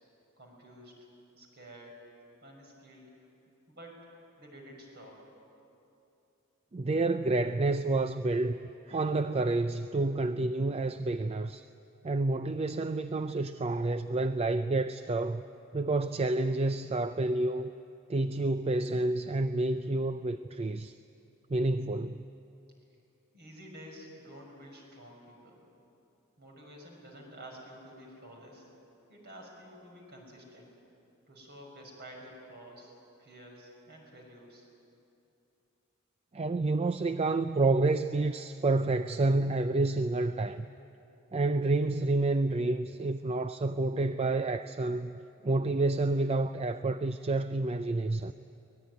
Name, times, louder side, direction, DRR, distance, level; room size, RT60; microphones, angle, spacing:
voice 1, 0.4-1.1 1.3-2.0 2.4-3.1 3.7-4.0 4.4-5.2 23.3-25.6 26.4-28.7 29.1-30.7 31.3-32.9 33.2-34.7, equal, 50° right, 6.1 m, -50 dB
voice 2, 6.7-8.6 8.9-11.7 12.0-15.4 15.7-17.7 18.1-20.9 21.5-22.3 36.3-40.7 41.3-48.3, right 2 dB, 30° right, 0.5 m, -29 dB
24.5 x 19.0 x 9.6 m
head